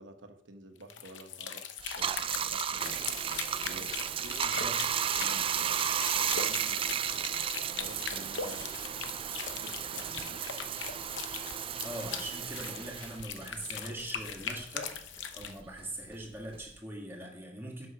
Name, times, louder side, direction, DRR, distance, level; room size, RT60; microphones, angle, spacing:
voice 1, 0.0-1.7 1.9-3.1 3.6-4.6 5.0-7.3 7.7-10.6 15.4-15.6, right 2 dB, 75° right, 7 dB, 1.0 m, -50 dB
sound 1, 0.8-15.6, left 7 dB, 75° left, 0.8 m, -41 dB
Bathtub (filling or washing), 1.8-14.6 14.9-16.8, right 8 dB, 30° right, 0.3 m, -34 dB
voice 2, 4.4-4.8 11.8-17.9, right 1 dB, 15° right, -2 dB, 2.1 m, -42 dB
7.9 x 5.8 x 6.0 m, 0.71 s
head